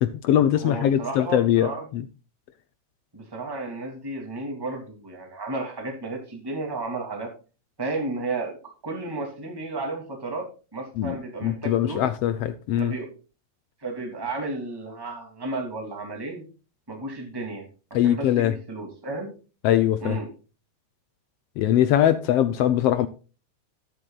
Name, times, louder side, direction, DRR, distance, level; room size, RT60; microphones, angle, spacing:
voice 1, 0.0-2.0 11.0-11.2 11.4-12.9 17.9-18.5 19.6-20.2 21.6-23.1, left 11 dB, 75° left, 1.4 m, -22 dB
voice 2, 0.6-1.8 3.1-7.3 7.8-12.0 12.8-13.1 13.8-16.5 16.9-17.7 18.0-19.3 20.0-20.3, right 2 dB, 10° right, 2.4 m, -33 dB
12.0 x 11.0 x 2.4 m
omnidirectional pair, 3.3 m